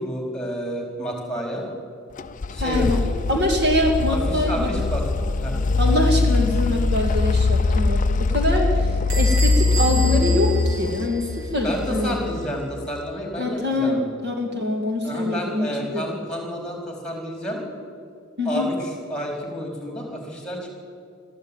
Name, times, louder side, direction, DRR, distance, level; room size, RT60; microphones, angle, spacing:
voice 1, 0.0-1.7 2.5-3.1 4.1-5.0 5.3-5.6 11.6-14.0 15.0-17.6 18.4-20.7, equal, 5° left, 1 dB, 4.3 m, -30 dB
sound 1, 2.2-13.0, left 3 dB, 35° left, 0.5 m, -22 dB
voice 2, 2.6-3.0 3.3-4.7 5.8-12.2 13.4-16.2 18.4-18.7, left 1 dB, 50° right, 2 dB, 2.4 m, -24 dB
Bell / Squeak, 9.1-11.6, right 3 dB, 80° right, 5.0 m, -31 dB
21.5 x 14.0 x 9.1 m, 2.3 s
head